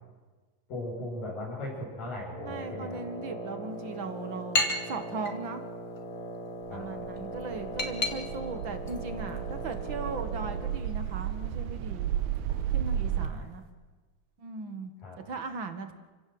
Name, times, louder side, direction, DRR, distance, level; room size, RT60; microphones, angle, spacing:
voice 1, 0.7-3.0 6.7-6.9 13.2-13.5 15.0-15.2, left 1 dB, 80° left, -8 dB, 8.6 m, -38 dB
Wind instrument woodwind instrument, 2.3-10.9, right 1 dB, 50° left, 3.7 m, -40 dB
voice 2, 2.5-5.6 6.7-12.1 12.7-13.6 14.4-14.9 15.3-15.9, right 4 dB, 45° right, 8 dB, 1.8 m, -38 dB
sound 1, 3.7-13.7, left 2 dB, 25° left, 1.9 m, -38 dB
sound 2, 6.7-13.3, right 10 dB, 70° right, 2.1 m, -33 dB
29.0 x 17.0 x 7.9 m, 1.3 s
omnidirectional pair, 3.9 m